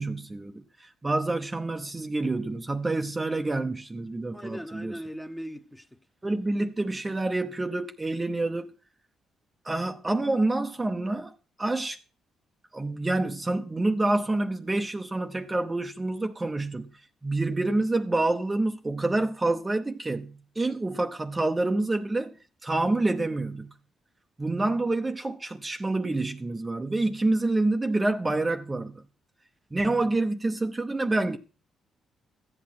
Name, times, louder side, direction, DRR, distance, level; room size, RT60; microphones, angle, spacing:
voice 1, 0.0-4.9 6.2-8.7 9.6-12.0 12.7-22.4 22.6-23.7 24.4-29.0 29.7-31.4, right 2 dB, 20° right, 0.8 m, -27 dB
voice 2, 4.3-6.0, equal, 5° left, 1.1 m, -39 dB
14.0 x 8.5 x 5.9 m
cardioid pair, 90°, 0 cm